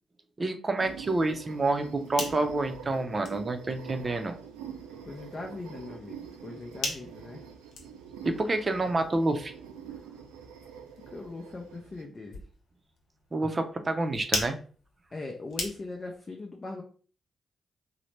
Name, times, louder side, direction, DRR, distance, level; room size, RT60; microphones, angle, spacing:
voice 1, 0.4-4.4 8.2-9.5 13.3-14.6, right 2 dB, 40° right, 7 dB, 0.5 m, -28 dB
sound 1, 0.8-12.0, right 7 dB, 90° right, 0.4 m, -45 dB
sound 2, 1.8-16.2, left 3 dB, 70° left, 0.7 m, -41 dB
voice 2, 5.1-7.4 11.1-12.4 15.1-16.8, left 3 dB, 40° left, 2 dB, 0.5 m, -40 dB
2.8 x 2.1 x 3.2 m, 0.42 s
hypercardioid pair, 40°, 0 cm